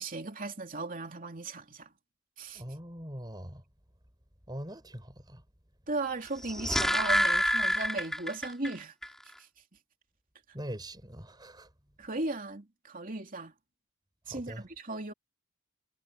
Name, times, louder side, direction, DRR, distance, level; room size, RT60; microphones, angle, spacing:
voice 1, 0.0-1.9 2.4-2.6 5.9-8.9 9.4-9.5 12.0-13.5 14.3-15.1, right 2 dB, 40° right, 3.0 m, -37 dB
voice 2, 2.5-3.6 4.5-5.4 10.5-11.7 14.3-14.6, equal, 20° right, 4.9 m, -42 dB
sound 1, 6.3-8.7 9.0-9.1, equal, ahead, 3.9 m, -27 dB
head